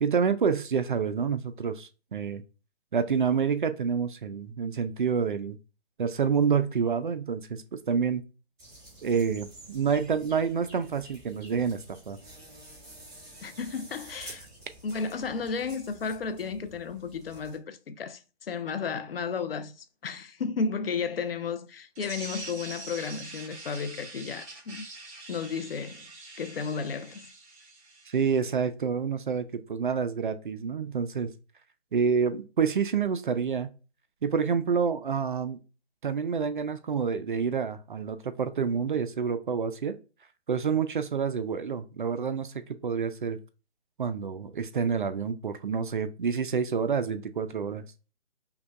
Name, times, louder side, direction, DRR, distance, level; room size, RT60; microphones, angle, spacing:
voice 1, 0.0-2.4 2.9-5.6 6.0-8.2 9.0-11.8 12.1-12.2 28.1-31.3 31.9-33.7 34.2-35.6 36.0-40.0 40.5-43.4 44.0-47.8, right 6 dB, 50° right, 0.4 m, -28 dB
sound 1, 8.6-17.6, right 1 dB, 10° right, 0.9 m, -50 dB
voice 2, 13.4-14.5 14.8-24.8 25.3-26.1 26.4-27.3, left 5 dB, 60° left, 0.5 m, -33 dB
sound 2, 21.9-28.4, right 2 dB, 35° right, 1.7 m, -44 dB
5.5 x 2.3 x 2.3 m
figure-of-eight pair, 150°, 34 cm